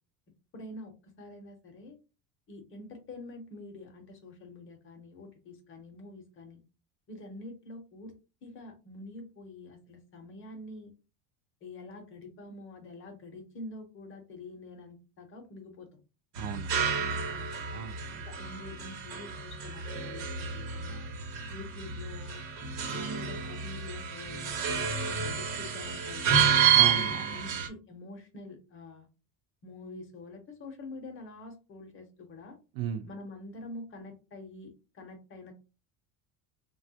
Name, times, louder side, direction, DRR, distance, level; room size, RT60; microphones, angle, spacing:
voice 1, 0.5-1.9 2.5-6.6 7.1-8.1 8.4-10.9 11.6-15.9 16.9-17.5 18.2-21.1 21.5-22.4 22.9-26.4 26.9-29.1 29.6-32.6 33.1-35.5, left 2 dB, 30° left, 4 dB, 0.7 m, -46 dB
voice 2, 16.3-16.7 17.7-18.2 26.7-27.7 32.7-33.1, right 9 dB, 60° right, 11 dB, 0.5 m, -36 dB
sound 1, 16.4-27.7, right 7 dB, 80° right, 1.0 m, -30 dB
3.2 x 2.3 x 2.7 m, 0.31 s
cardioid pair, 160°, 40 cm